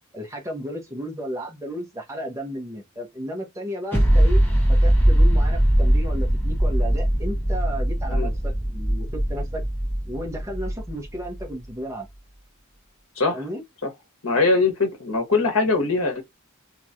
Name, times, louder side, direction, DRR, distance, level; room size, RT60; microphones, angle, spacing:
voice 1, 0.1-9.6 10.1-12.1 13.3-13.6, equal, 15° right, 1.1 m, -33 dB
sound 1, 3.9-11.4, right 1 dB, 10° left, 1.3 m, -20 dB
voice 2, 14.2-16.2, left 3 dB, 65° left, 1.2 m, -22 dB
3.1 x 3.0 x 2.5 m
head